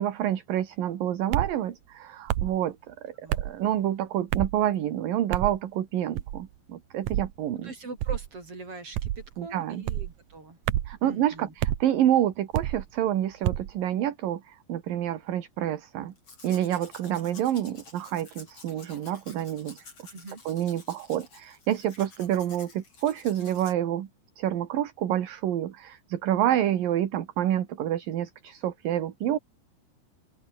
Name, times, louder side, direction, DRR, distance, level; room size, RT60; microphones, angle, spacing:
voice 1, 0.0-7.7 9.4-9.8 10.9-16.1 16.4-20.1 20.5-24.1 24.4-29.4, right 11 dB, 60° right, 3.2 m, -28 dB
sound 1, 1.3-1.6 2.3-2.6 3.3-3.5 4.3-4.6 5.3-5.6 6.2-6.5 7.1-7.3 8.0-8.3 8.9-9.3 9.9-10.1 10.7-11.0 11.6-11.8 12.5-12.8 13.4-13.7, right 13 dB, 75° right, 1.7 m, -28 dB
voice 2, 7.6-10.6 11.0-11.5 20.1-20.4, right 3 dB, 30° right, 8.0 m, -42 dB
Domestic sounds home sounds, 16.2-23.7, left 3 dB, 30° left, 6.7 m, -50 dB
open air
omnidirectional pair, 4.9 m